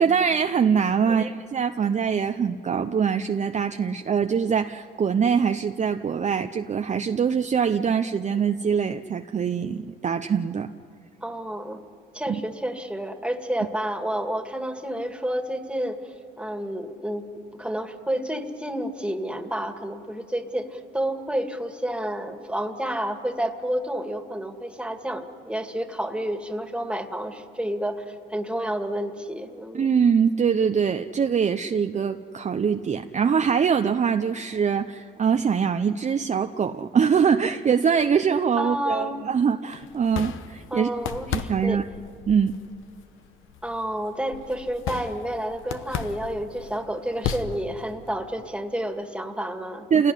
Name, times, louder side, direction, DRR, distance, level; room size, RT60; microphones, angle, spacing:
voice 1, 0.0-10.7 12.3-12.4 29.7-40.9 41.3-41.8 42.3-42.5 49.9-50.1, right 6 dB, 35° right, 7 dB, 0.7 m, -23 dB
voice 2, 11.2-11.8 12.1-17.3 17.6-29.9 38.6-39.2 40.7-41.8 43.6-49.9, right 1 dB, 5° right, 6 dB, 2.1 m, -30 dB
sound 1, 39.7-48.1, left 8 dB, 85° left, 1.0 m, -36 dB
28.0 x 17.5 x 10.0 m, 2.4 s
cardioid pair, 90°, 20 cm